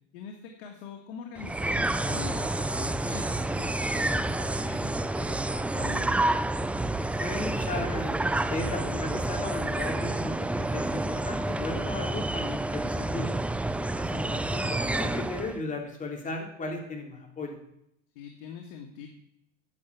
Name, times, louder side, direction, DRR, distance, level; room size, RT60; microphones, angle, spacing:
voice 1, 0.1-6.1 13.8-13.9 18.2-19.1, left 7 dB, 85° left, 2 dB, 1.8 m, -43 dB
sound 1, 1.4-15.6, right 2 dB, 5° right, 0.4 m, -29 dB
voice 2, 7.2-13.3 14.0-17.6, left 3 dB, 25° left, 2 dB, 3.1 m, -36 dB
9.5 x 7.4 x 8.2 m, 0.75 s
supercardioid pair, 120°, 30 cm